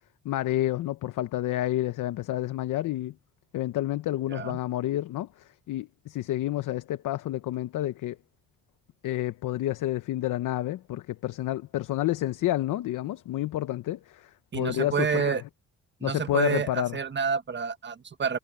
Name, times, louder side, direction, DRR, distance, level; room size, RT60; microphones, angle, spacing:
voice 1, 0.2-3.1 3.5-8.2 9.0-15.4 16.0-17.0, left 14 dB, 80° left, 0.9 m, -29 dB
voice 2, 14.5-15.4 16.0-18.4, right 6 dB, 35° right, 1.3 m, -29 dB
cardioid pair, 90°, 32 cm